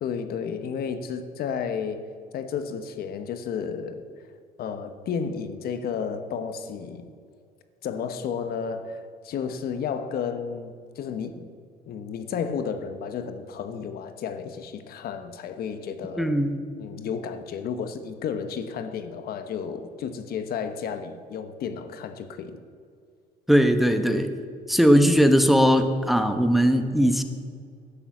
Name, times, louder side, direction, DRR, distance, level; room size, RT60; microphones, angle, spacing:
voice 1, 0.0-2.0 2.3-4.0 4.6-7.1 7.8-11.5 11.9-16.3 16.8-22.6, left 6 dB, 65° left, 9 dB, 1.1 m, -32 dB
voice 2, 16.2-16.6 23.5-24.3 24.7-27.2, equal, ahead, 8 dB, 0.9 m, -19 dB
11.5 x 8.9 x 7.1 m, 2.2 s
cardioid pair, 110°, 17 cm